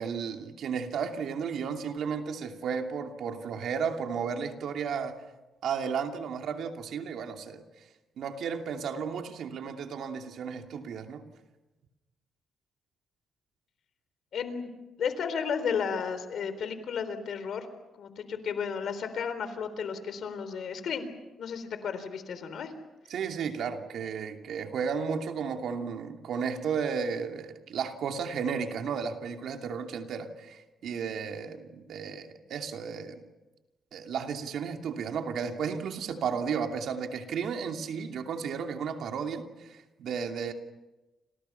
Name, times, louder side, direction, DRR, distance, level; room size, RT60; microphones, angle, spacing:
voice 1, 0.0-5.2 5.6-7.6 8.2-11.2 23.1-33.2 33.9-40.5, right 6 dB, 75° right, 4 dB, 2.8 m, -33 dB
voice 2, 14.3-14.7 15.0-17.7 18.0-21.0 21.4-22.7, left 6 dB, 70° left, 11 dB, 3.8 m, -33 dB
30.0 x 27.5 x 5.8 m, 1.1 s
cardioid pair, 90°, 0 cm